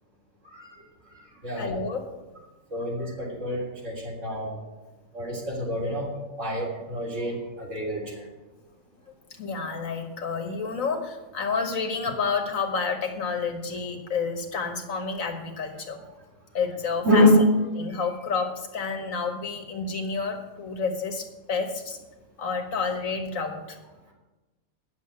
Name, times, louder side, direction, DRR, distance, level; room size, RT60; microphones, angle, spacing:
voice 1, 1.5-2.1 6.5-6.6 9.4-16.0 16.5-17.3 17.8-22.0 22.4-23.8, left 5 dB, 75° left, 4 dB, 1.8 m, -30 dB
voice 2, 2.7-4.5 5.1-6.1 6.4-8.2 17.0-17.4, left 1 dB, 65° right, -3 dB, 3.8 m, -25 dB
9.3 x 7.5 x 8.6 m, 1.1 s
omnidirectional pair, 1.4 m